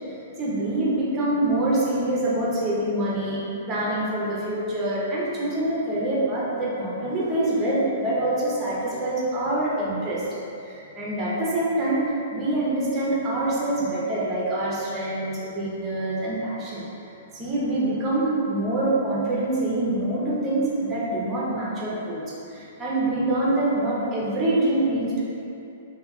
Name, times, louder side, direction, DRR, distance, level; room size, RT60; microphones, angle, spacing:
voice 1, 0.1-10.2 10.6-12.0 12.3-16.8 17.3-22.2 22.5-25.2, right 1 dB, 15° right, -6 dB, 0.6 m, -25 dB
2.9 x 2.6 x 4.1 m, 2.7 s
hypercardioid pair, 175°, 0 cm